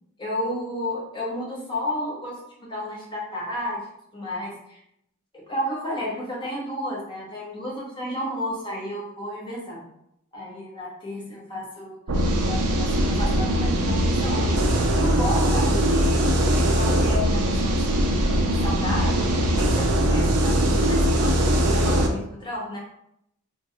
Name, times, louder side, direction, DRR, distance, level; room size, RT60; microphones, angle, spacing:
voice 1, 0.2-3.9 4.1-4.8 5.3-9.9 10.3-18.2 18.6-22.8, left 1 dB, 20° left, -4 dB, 0.8 m, -32 dB
sound 1, 12.1-22.1, right 1 dB, 85° right, 0.5 m, -21 dB
3.1 x 2.2 x 2.7 m, 0.76 s
head